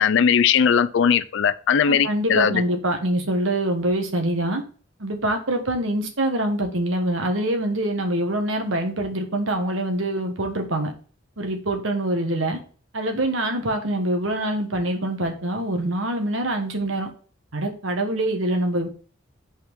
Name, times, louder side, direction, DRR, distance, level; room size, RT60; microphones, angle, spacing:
voice 1, 0.0-2.6, left 7 dB, 65° left, 0.4 m, -19 dB
voice 2, 1.9-4.6 5.0-10.9 11.4-12.6 12.9-17.1 17.5-18.9, right 1 dB, 75° right, 1.4 m, -25 dB
5.7 x 4.3 x 5.2 m
head